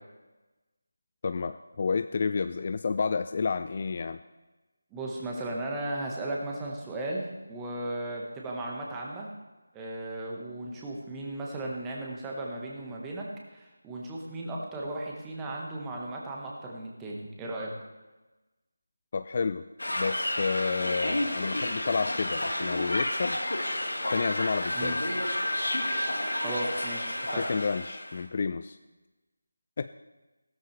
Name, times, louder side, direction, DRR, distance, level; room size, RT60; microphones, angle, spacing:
voice 1, 1.2-4.2 19.1-19.6 19.9-23.4 24.1-25.0 27.3-28.8 29.8-29.9, left 5 dB, 35° left, 11 dB, 0.3 m, -30 dB
voice 2, 4.9-9.3 9.7-13.3 13.5-17.7 24.7-24.9 26.4-27.4, right 1 dB, 10° right, -2 dB, 1.5 m, -36 dB
sound 1, 19.8-28.2, left 1 dB, 65° left, 1.9 m, -30 dB
16.0 x 13.0 x 3.4 m, 1.1 s
figure-of-eight pair, 160°, 0 cm